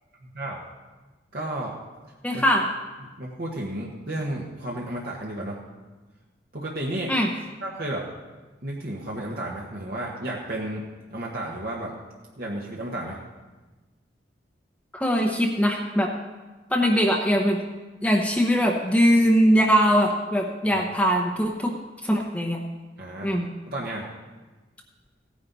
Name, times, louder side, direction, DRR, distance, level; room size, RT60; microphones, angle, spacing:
voice 1, 0.2-0.6 1.3-1.7 2.3-2.4 3.2-5.6 6.5-7.1 7.6-8.0 8.6-10.8 11.1-11.9 12.4-13.2 20.7-20.8 23.0-23.3 23.7-24.1, right 1 dB, 55° right, -3 dB, 1.4 m, -32 dB
voice 2, 2.2-2.7 7.1-7.3 14.9-16.1 16.7-17.6 18.0-21.7 22.0-22.6 23.2-23.5, equal, 10° left, 0 dB, 0.8 m, -21 dB
16.0 x 9.9 x 4.1 m, 1.2 s
head